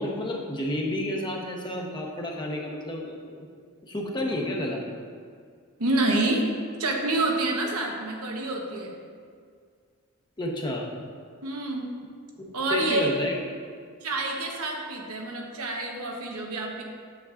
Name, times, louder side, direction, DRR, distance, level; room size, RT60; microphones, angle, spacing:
voice 1, 0.0-3.5 3.8-4.8 10.4-10.9 12.4-13.4, left 1 dB, 20° left, -1 dB, 0.8 m, -31 dB
voice 2, 5.8-6.5 6.8-9.0 11.4-11.9 12.5-13.1 14.0-16.8, right 2 dB, 85° right, 1 dB, 1.0 m, -27 dB
8.1 x 7.3 x 2.4 m, 2.1 s
head